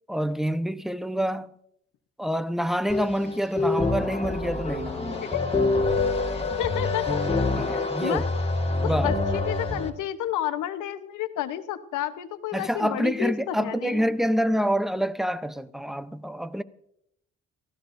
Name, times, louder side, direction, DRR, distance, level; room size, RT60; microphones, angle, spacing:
voice 1, 0.1-1.5 2.2-5.3 7.5-8.2 8.8-9.2 12.5-16.6, equal, ahead, 0.7 m, -27 dB
sound 1, 2.9-9.9, left 3 dB, 20° left, 2.0 m, -26 dB
voice 2, 5.2-5.6 6.3-7.4 7.7-8.3 8.8-14.0, left 12 dB, 85° left, 1.1 m, -31 dB
26.5 x 16.0 x 2.7 m
cardioid pair, 90°, 30 cm